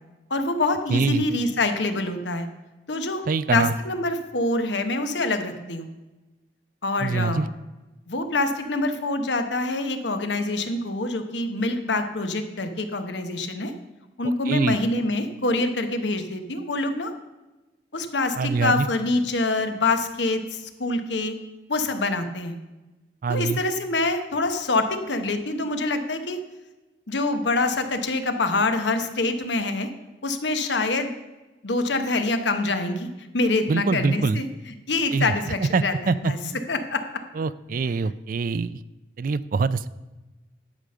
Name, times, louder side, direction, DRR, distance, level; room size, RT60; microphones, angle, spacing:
voice 1, 0.3-2.5 2.9-3.2 3.5-5.9 6.8-7.4 8.1-13.7 14.2-17.1 17.9-21.3 21.7-22.6 23.3-26.4 27.1-29.9 30.2-31.1 31.6-33.1 33.3-36.4 36.7-37.0, left 2 dB, 75° left, 7 dB, 1.1 m, -25 dB
voice 2, 0.9-1.2 3.3-3.7 7.0-7.5 14.2-14.8 18.4-18.9 23.2-23.6 33.7-34.4 35.1-35.3 35.7-36.3 37.4-38.8 39.2-39.9, right 4 dB, 50° right, 16 dB, 0.4 m, -24 dB
12.0 x 5.1 x 6.7 m, 1.1 s
head